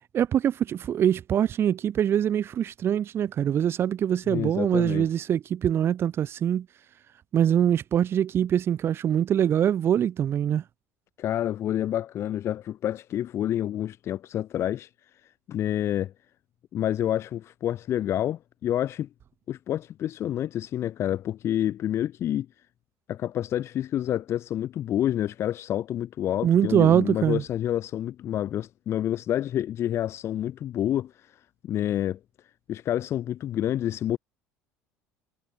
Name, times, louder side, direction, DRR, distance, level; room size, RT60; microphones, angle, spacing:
voice 1, 0.1-6.7 7.3-10.6 26.4-27.4, right 9 dB, 45° right, 5.8 m, -23 dB
voice 2, 4.3-5.1 11.2-14.9 15.5-16.1 16.7-19.1 19.5-22.5 23.1-31.4 31.6-32.2 32.7-34.2, left 11 dB, 50° left, 3.8 m, -28 dB
supercardioid pair, 100°, 6 cm